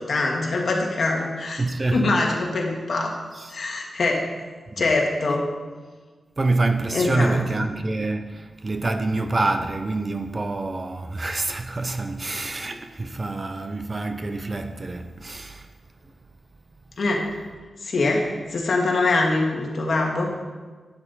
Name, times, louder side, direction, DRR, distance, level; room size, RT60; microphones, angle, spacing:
voice 1, 0.0-1.6 1.9-3.1 3.5-4.3 4.8-5.5 6.9-7.4 17.0-17.2 17.8-18.2 18.5-20.3, left 3 dB, 55° left, 1.9 m, -23 dB
voice 2, 1.6-2.1 3.3-3.5 4.7-4.8 6.4-15.7, right 2 dB, 30° right, 0.5 m, -26 dB
12.0 x 8.8 x 4.2 m
wide cardioid pair, 130°, 0 cm